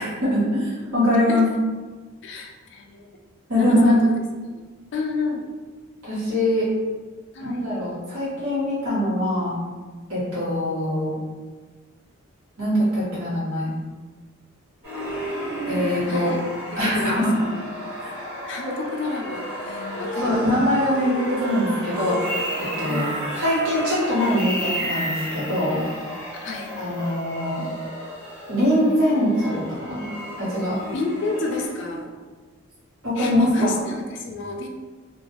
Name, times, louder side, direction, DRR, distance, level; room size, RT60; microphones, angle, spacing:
voice 1, 0.0-1.5 3.5-4.0 6.0-6.7 7.4-9.6 10.1-11.2 12.6-13.7 15.7-16.3 16.8-17.3 18.0-18.1 18.6-18.7 20.2-22.4 22.8-23.1 23.3-25.8 26.8-27.6 28.5-29.6 29.9-30.0 30.4-30.8 33.0-33.8, left 1 dB, 85° right, -10 dB, 1.3 m, -22 dB
voice 2, 2.2-3.1 3.5-4.2 4.5-5.5 7.3-7.6 15.7-16.4 16.7-17.4 18.5-20.7 22.8-23.2 26.4-26.8 30.9-32.1 33.2-34.7, left 3 dB, 55° left, 2 dB, 0.3 m, -31 dB
sound 1, 14.8-31.7, equal, 30° right, 1.3 m, -32 dB
2.5 x 2.2 x 2.9 m, 1.4 s
head